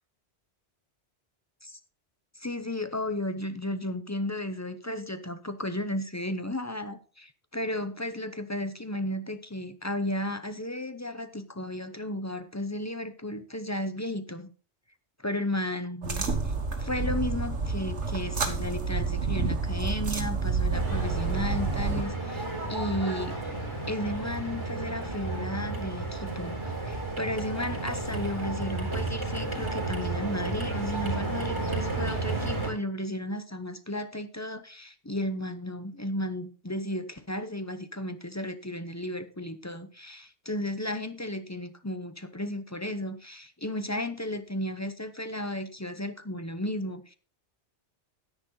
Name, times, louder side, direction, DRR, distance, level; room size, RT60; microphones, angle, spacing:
voice 1, 2.3-14.5 15.2-23.4 23.9-26.6 26.9-47.1, left 1 dB, 15° left, 0.7 m, -34 dB
sound 1, 16.0-22.0, right 4 dB, 80° right, 1.9 m, -29 dB
sound 2, 20.7-32.7, right 2 dB, 25° right, 3.9 m, -32 dB
10.0 x 9.9 x 4.0 m
omnidirectional pair, 1.2 m